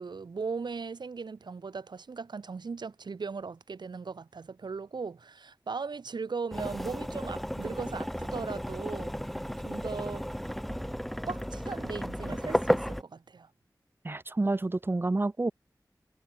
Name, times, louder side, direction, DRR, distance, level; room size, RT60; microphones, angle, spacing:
voice 1, 0.0-9.1 9.6-10.3 11.3-13.5, right 4 dB, 90° right, 0.7 m, -38 dB
sound 1, 6.5-13.0, equal, ahead, 1.3 m, -33 dB
voice 2, 14.0-15.5, right 2 dB, 30° right, 0.5 m, -29 dB
wide cardioid pair, 55°, 7 cm